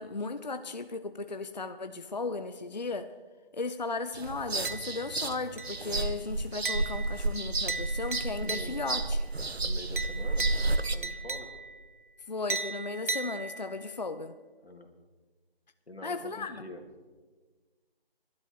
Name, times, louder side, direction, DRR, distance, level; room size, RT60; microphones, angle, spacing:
voice 1, 0.0-3.1 3.5-9.3 12.3-14.3 16.0-16.6, left 3 dB, 45° left, 9 dB, 0.7 m, -36 dB
sound 1, 4.1-11.0, right 2 dB, 90° right, 1.1 m, -31 dB
sound 2, 4.6-5.2 5.6-6.0 6.6-9.1 10.0-11.9 12.5-13.9, right 3 dB, 55° right, 1.1 m, -37 dB
voice 2, 8.4-8.8 9.6-10.5 10.9-11.5 14.6-14.9 15.9-16.8, left 1 dB, 90° left, 4 dB, 2.9 m, -45 dB
22.0 x 11.5 x 4.6 m, 1.4 s
figure-of-eight pair, 170°, 30 cm